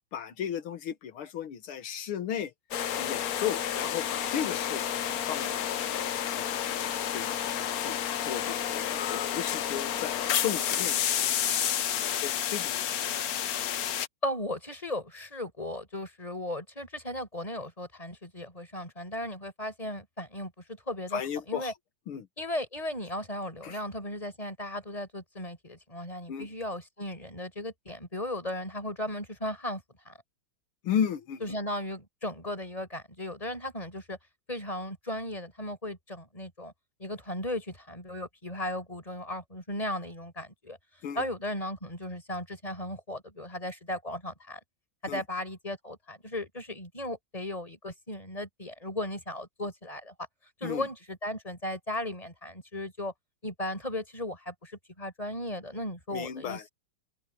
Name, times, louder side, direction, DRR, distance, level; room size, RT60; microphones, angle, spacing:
voice 1, 0.1-2.5 3.0-5.7 6.3-6.8 7.1-8.0 8.2-13.2 21.1-21.7 22.1-22.3 23.6-23.8 26.3-26.5 30.8-31.6 41.0-41.2 45.1-45.2 50.6-50.9 56.1-56.6, left 9 dB, 85° left, 2.2 m, -35 dB
sound 1, 2.7-14.1, left 10 dB, 60° left, 1.1 m, -30 dB
voice 2, 14.2-21.2 21.5-21.7 22.4-30.1 31.4-34.2 34.5-36.7 37.0-40.8 41.1-44.6 45.0-50.1 50.6-53.1 53.4-56.7, left 1 dB, 15° left, 6.2 m, -36 dB
open air
omnidirectional pair, 2.3 m